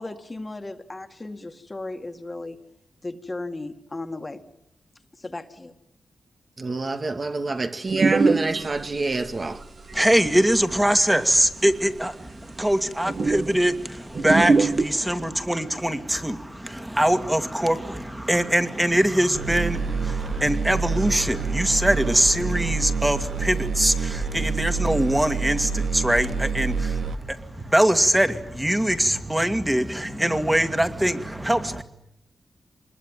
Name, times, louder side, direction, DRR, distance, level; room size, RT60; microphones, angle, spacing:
voice 1, 0.0-2.6 3.0-4.4 5.2-5.7, left 2 dB, 25° left, 2.1 m, -35 dB
voice 2, 6.6-9.6, right 3 dB, 40° right, 2.1 m, -27 dB
sound 1, 7.9-9.6 9.9-11.2 11.9-12.0 12.3-12.4 12.6-12.7 13.1-13.7 14.2-14.9, right 4 dB, 55° right, 2.2 m, -22 dB
voice 3, 9.9-31.8, right 1 dB, 10° right, 2.3 m, -23 dB
sound 2, 19.3-27.1, right 4 dB, 90° right, 2.6 m, -27 dB
26.5 x 21.5 x 9.2 m
cardioid pair, 90°, 0 cm